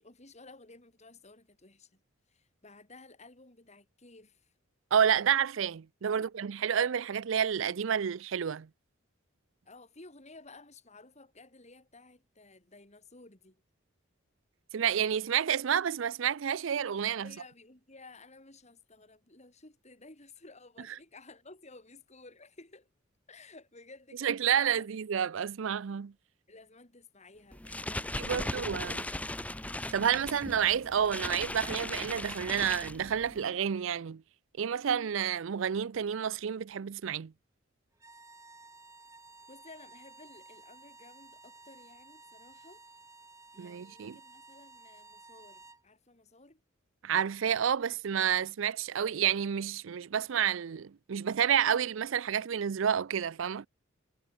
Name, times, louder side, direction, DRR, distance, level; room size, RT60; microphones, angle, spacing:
voice 1, 0.0-2.0 2.3-4.5 6.1-6.3 9.6-13.6 17.2-22.9 23.3-24.9 26.5-29.3 29.9-30.4 38.1-38.2 39.5-43.0 43.5-46.6, left 3 dB, 35° left, 4.3 m, -55 dB
voice 2, 4.9-8.7 14.7-17.3 24.2-26.1 28.2-29.0 29.9-34.2 34.6-37.3 43.6-44.2 47.0-53.7, right 8 dB, 65° right, 0.4 m, -29 dB
sound 1, 27.5-33.4, left 1 dB, 5° left, 0.9 m, -38 dB
sound 2, 37.9-45.8, right 3 dB, 15° right, 7.4 m, -54 dB
head